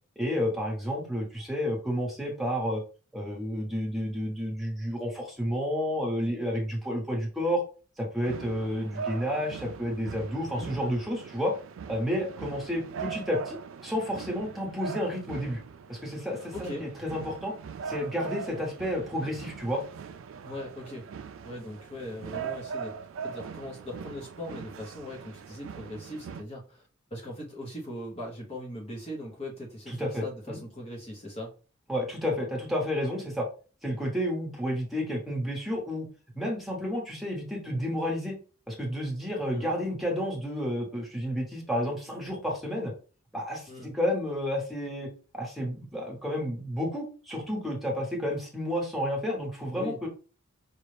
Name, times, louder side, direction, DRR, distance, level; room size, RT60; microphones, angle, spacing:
voice 1, 0.2-2.8 3.1-7.6 8.0-11.5 11.9-15.6 15.9-17.5 17.8-19.8 29.9-30.6 31.9-33.5 33.8-36.1 36.3-38.4 38.7-42.9 43.3-45.1 45.3-50.1, equal, ahead, -2 dB, 1.1 m, -31 dB
sound 1, 8.2-26.4, right 6 dB, 65° right, 0.4 m, -41 dB
voice 2, 20.4-21.1 21.4-23.0 23.2-26.8 27.1-31.5 39.5-39.7 43.7-43.9 49.7-50.1, left 1 dB, 30° left, -3 dB, 0.8 m, -40 dB
5.2 x 2.3 x 3.2 m, 0.37 s
head